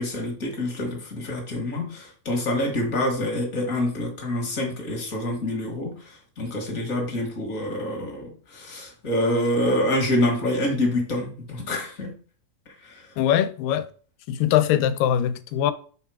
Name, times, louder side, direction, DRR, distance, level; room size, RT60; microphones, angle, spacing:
voice 1, 0.0-12.1 12.8-13.1, left 1 dB, 60° left, 0.8 m, -26 dB
voice 2, 13.2-13.9 14.3-15.7, left 10 dB, 85° left, 2.2 m, -22 dB
7.2 x 3.3 x 4.7 m
omnidirectional pair, 3.8 m